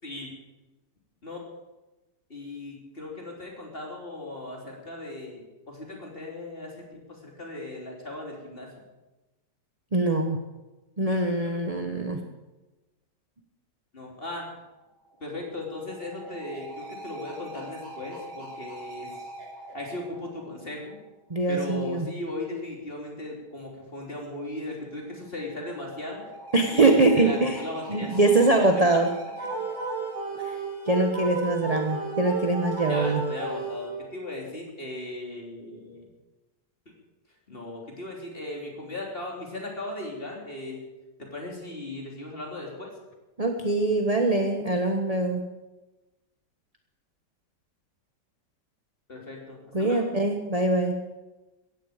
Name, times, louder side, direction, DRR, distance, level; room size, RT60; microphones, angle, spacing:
voice 1, 2.3-8.7 13.9-14.5 15.2-19.1 19.7-21.0 21.5-26.2 26.7-28.2 28.6-28.7 32.9-36.1 37.5-40.8 41.2-42.9 49.1-50.1, left 2 dB, 30° left, -1 dB, 3.5 m, -37 dB
voice 2, 9.9-10.4 11.0-12.2 21.3-22.1 26.5-27.6 27.9-29.1 30.4-30.6 30.9-33.2 43.4-45.4 49.7-51.0, right 2 dB, 25° right, 4 dB, 1.1 m, -23 dB
sound 1, 14.8-21.2 24.8-31.2, right 1 dB, 70° right, 4.0 m, -44 dB
sound 2, 29.4-34.3, right 4 dB, 85° right, 4.2 m, -33 dB
17.0 x 15.0 x 5.1 m, 1.1 s
omnidirectional pair, 1.9 m